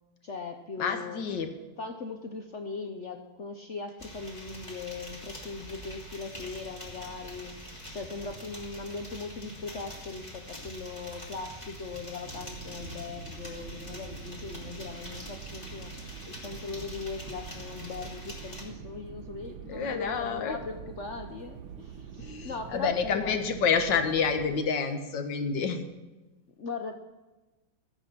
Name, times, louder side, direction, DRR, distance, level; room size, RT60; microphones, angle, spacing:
voice 1, 0.2-1.2 1.8-7.5 7.9-15.9 16.3-23.4 26.6-27.0, left 4 dB, 80° left, 5 dB, 0.6 m, -39 dB
voice 2, 0.8-1.5 19.6-20.6 22.2-25.8, left 6 dB, 60° left, 7 dB, 1.8 m, -28 dB
sound 1, 4.0-18.6, equal, 15° left, 2.9 m, -44 dB
sound 2, 12.2-24.6, right 7 dB, 70° right, 1.4 m, -45 dB
14.5 x 9.1 x 6.0 m, 1.1 s
omnidirectional pair, 2.3 m